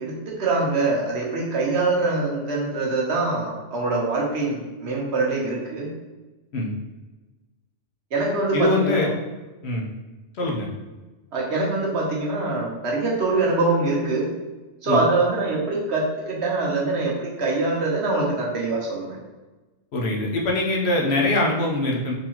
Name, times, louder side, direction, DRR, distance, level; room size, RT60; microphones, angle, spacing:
voice 1, 0.0-5.9 8.1-9.1 11.3-14.3 14.8-19.2, right 3 dB, 65° right, -3 dB, 1.1 m, -24 dB
voice 2, 8.5-9.1 9.6-9.8 10.4-10.7 14.9-15.0 19.9-22.1, left 2 dB, 65° left, -1 dB, 0.9 m, -23 dB
4.0 x 2.7 x 2.9 m, 1.2 s
omnidirectional pair, 1.2 m